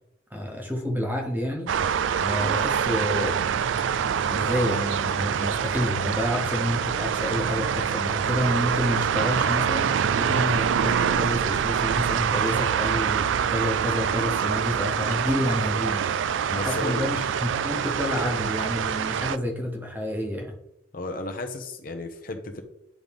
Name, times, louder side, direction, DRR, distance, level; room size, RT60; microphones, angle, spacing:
voice 1, 0.3-1.7 2.2-3.4 4.3-9.9 10.1-16.0 16.5-20.5, equal, 10° right, 1 dB, 1.1 m, -29 dB
sound 1, 1.7-19.4, right 7 dB, 75° right, 0.4 m, -25 dB
voice 2, 16.5-17.0 20.9-22.6, left 2 dB, 50° left, 5 dB, 0.8 m, -33 dB
10.0 x 3.8 x 3.5 m, 0.80 s
head